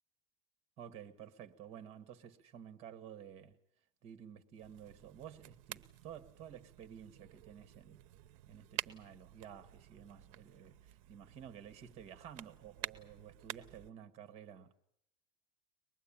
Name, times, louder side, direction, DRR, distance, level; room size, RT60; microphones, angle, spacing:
voice 1, 0.8-3.6 4.0-8.1 8.5-14.7, right 9 dB, 35° right, 1.9 m, -52 dB
sound 1, 4.6-13.9, right 15 dB, 70° right, 0.9 m, -50 dB
24.0 x 20.5 x 8.8 m
cardioid pair, 175°, 17 cm